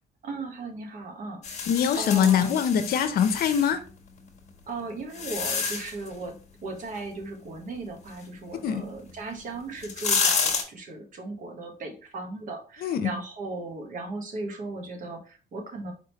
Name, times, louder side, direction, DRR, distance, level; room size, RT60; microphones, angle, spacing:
voice 1, 0.2-1.7 1.9-2.6 4.7-6.3 6.6-15.9, right 3 dB, 50° right, 1.3 m, -37 dB
sound 1, 1.4-3.7 4.5-6.1 9.1-9.2 9.7-10.6, left 5 dB, 45° left, 1.2 m, -29 dB
voice 2, 1.7-3.8 8.6-8.9 12.8-13.1, left 8 dB, 60° left, 0.7 m, -23 dB
4.8 x 3.6 x 3.0 m
cardioid pair, 110°, 17 cm